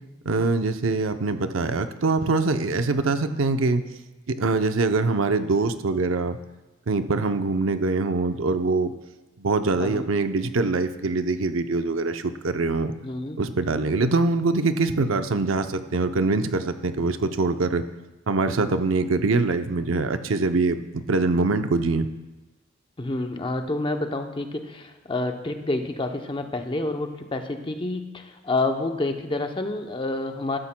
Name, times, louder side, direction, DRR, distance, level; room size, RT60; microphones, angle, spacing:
voice 1, 0.2-3.8 4.3-6.4 6.9-8.9 9.4-12.9 13.4-17.8 18.3-22.1, right 3 dB, 85° right, 9 dB, 0.6 m, -23 dB
voice 2, 9.8-10.1 13.0-13.5 23.0-30.6, left 2 dB, 25° left, 5 dB, 0.7 m, -28 dB
14.0 x 12.5 x 2.2 m, 1.1 s
head